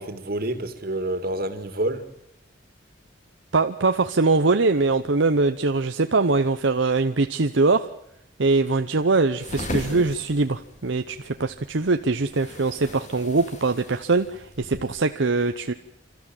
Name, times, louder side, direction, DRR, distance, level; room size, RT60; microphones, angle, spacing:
voice 1, 0.0-2.0, right 1 dB, 50° right, 8 dB, 2.4 m, -28 dB
voice 2, 3.5-7.9 8.4-15.7, right 3 dB, 75° right, 7 dB, 0.8 m, -22 dB
sound 1, 9.4-15.0, left 1 dB, 40° left, 2.5 m, -38 dB
29.5 x 14.0 x 9.0 m, 0.75 s
head